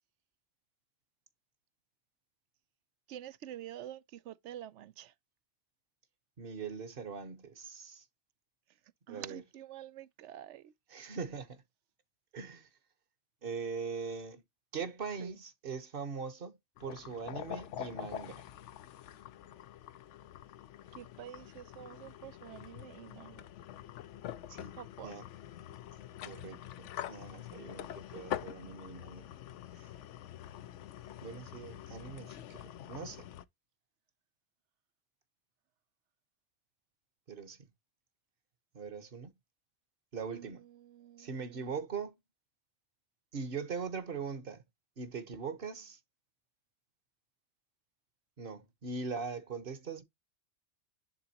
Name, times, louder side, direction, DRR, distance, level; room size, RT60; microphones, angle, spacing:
voice 1, 3.1-5.1 9.1-10.7 15.2-15.3 20.9-23.5 24.8-25.2 40.3-41.7, right 11 dB, 75° right, 0.9 m, -48 dB
voice 2, 6.4-8.0 9.1-9.4 10.9-11.6 12.3-12.7 13.4-14.4 14.7-18.4 24.5-24.8 25.0-25.2 26.2-29.3 29.8-29.9 31.2-32.6 32.9-33.2 37.3-37.6 38.7-39.3 40.1-40.6 41.2-42.1 43.3-44.6 45.0-46.0 48.4-50.0, right 5 dB, 50° right, 1.2 m, -41 dB
sound 1, 16.8-33.5, left 11 dB, 80° left, 0.9 m, -45 dB
10.5 x 3.7 x 2.9 m
omnidirectional pair, 1.2 m